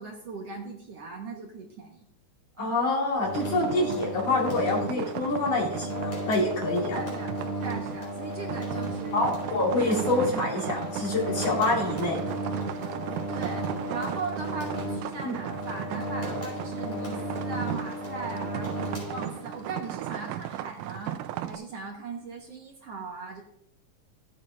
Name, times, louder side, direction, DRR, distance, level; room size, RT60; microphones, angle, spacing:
voice 1, 0.0-2.1 2.6-2.8 6.9-10.1 11.4-11.7 13.3-21.2 21.5-23.4, right 4 dB, 60° right, 0 dB, 1.8 m, -39 dB
voice 2, 2.6-7.0 9.1-12.2 15.2-15.3, left 2 dB, 50° left, -3 dB, 3.2 m, -26 dB
sound 1, 3.2-19.7, right 1 dB, 15° left, 4.2 m, -34 dB
sound 2, 3.3-21.6, right 12 dB, 80° right, 2.0 m, -38 dB
15.0 x 8.6 x 2.4 m, 0.74 s
omnidirectional pair, 3.8 m